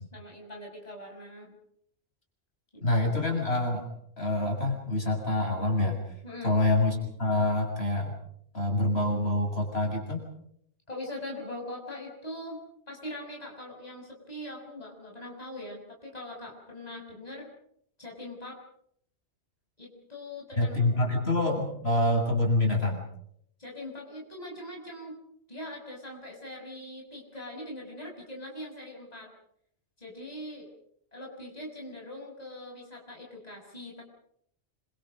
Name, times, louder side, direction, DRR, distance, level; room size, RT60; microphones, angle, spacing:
voice 1, 0.1-1.5 2.7-3.1 6.2-6.5 10.9-12.6 12.9-17.5 18.0-18.6 19.8-21.2 23.6-25.1 25.5-29.3 30.0-30.7 31.1-34.0, left 1 dB, 35° left, -1 dB, 6.5 m, -42 dB
voice 2, 2.8-3.9 4.2-6.0 6.4-8.1 8.5-10.2 20.6-23.0, left 2 dB, 65° left, 1 dB, 7.3 m, -26 dB
27.5 x 27.0 x 5.2 m, 0.70 s
omnidirectional pair, 1.1 m